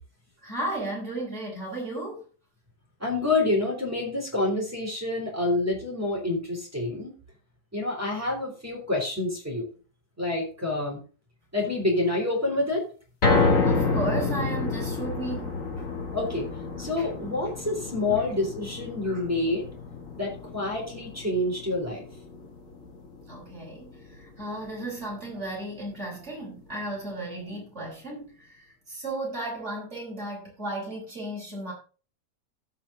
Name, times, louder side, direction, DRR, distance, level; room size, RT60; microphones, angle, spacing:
voice 1, 0.4-2.2 13.6-15.5 15.8-15.9 17.0-17.1 18.1-18.2 19.0-19.2 23.3-31.7, right 2 dB, 40° right, -3 dB, 5.9 m, -34 dB
voice 2, 3.0-7.1 7.7-9.7 10.2-11.0 11.5-12.9 16.1-16.5 16.8-19.7 20.1-22.0, left 2 dB, 10° right, -2 dB, 3.4 m, -27 dB
sound 1, 13.2-25.5 25.9-26.0 26.4-26.5, left 3 dB, 50° left, 2.4 m, -29 dB
17.0 x 5.8 x 3.7 m, 0.36 s
omnidirectional pair, 1.8 m